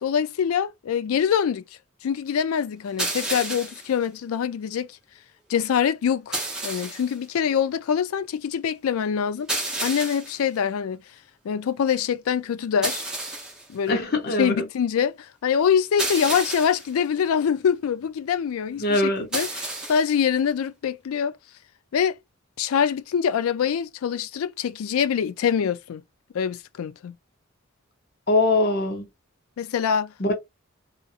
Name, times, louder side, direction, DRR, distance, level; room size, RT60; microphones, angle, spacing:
voice 1, 0.0-1.6 2.0-4.9 5.5-9.5 9.8-11.0 11.4-13.0 13.7-14.0 14.4-19.0 19.3-21.4 21.9-22.2 22.6-26.0 26.3-27.1 29.6-30.3, left 7 dB, 80° left, 0.3 m, -24 dB
sound 1, 3.0-3.9 6.3-7.2 9.5-10.4 12.8-13.7 16.0-16.9 19.3-20.2, right 2 dB, 5° right, 0.7 m, -30 dB
voice 2, 13.9-14.5 18.8-19.3 28.3-29.1 30.2-30.3, left 2 dB, 45° left, 0.8 m, -22 dB
2.7 x 2.5 x 2.4 m
head